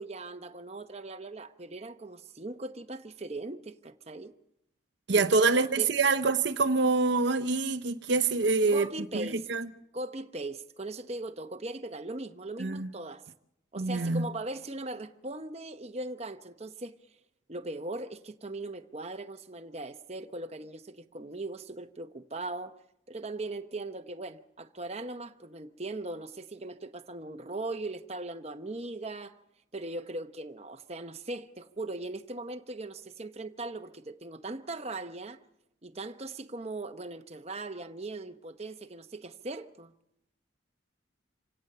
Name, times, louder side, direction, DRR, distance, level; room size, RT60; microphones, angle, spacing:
voice 1, 0.0-4.3 5.1-5.9 8.7-9.5 9.9-13.2 13.7-17.0 17.5-22.7 23.1-29.4 29.7-35.4 35.8-39.9, right 2 dB, 30° right, 0.9 m, -39 dB
voice 2, 5.1-8.9 9.1-9.7 12.6-12.9 13.8-14.3, right 3 dB, 55° right, 0.7 m, -26 dB
26.5 x 17.5 x 6.7 m
head